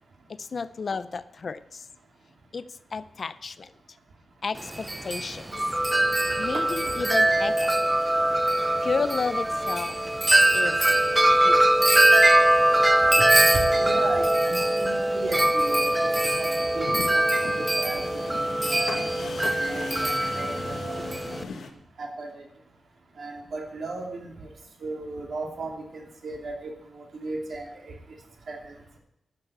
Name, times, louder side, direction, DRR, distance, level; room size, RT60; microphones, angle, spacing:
voice 1, 0.3-1.9 2.5-3.7 4.4-5.5 6.4-7.8 8.8-10.0 10.5-10.8 11.4-11.7, left 4 dB, 40° left, 14 dB, 0.5 m, -32 dB
Wind chime, 4.6-21.4, right 1 dB, 10° right, 0.6 m, -22 dB
voice 2, 6.5-6.9 13.2-13.3 13.5-19.3 19.7-21.4 22.0-22.4 23.2-24.5 24.8-27.9 28.5-29.0, right 3 dB, 60° right, 1 dB, 2.8 m, -36 dB
sound 1, 13.3-21.7, left 4 dB, 80° left, 1.4 m, -40 dB
12.0 x 6.9 x 8.4 m, 0.80 s
wide cardioid pair, 175°, 0 cm